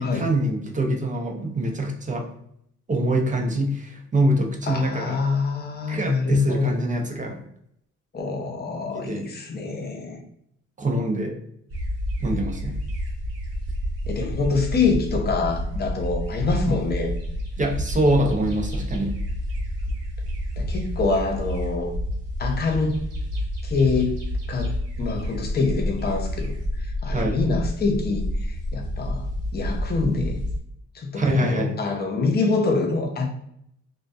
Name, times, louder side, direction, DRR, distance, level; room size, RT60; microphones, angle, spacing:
voice 1, 0.0-2.3 2.9-5.2 5.9-7.4 8.9-9.3 10.8-11.4 12.2-12.8 17.6-19.1 27.1-27.4 31.2-31.8, right 1 dB, 25° right, 2 dB, 0.5 m, -24 dB
voice 2, 4.7-6.7 8.1-10.2 14.1-17.1 20.6-21.9 22.4-23.0 23.6-24.1 24.5-24.7 25.0-29.3 29.5-30.4 30.9-33.3, left 4 dB, 35° left, 2 dB, 0.6 m, -25 dB
sound 1, 11.7-30.6, equal, 50° right, 0.9 m, -29 dB
2.3 x 2.2 x 2.5 m, 0.72 s
cardioid pair, 90°, 30 cm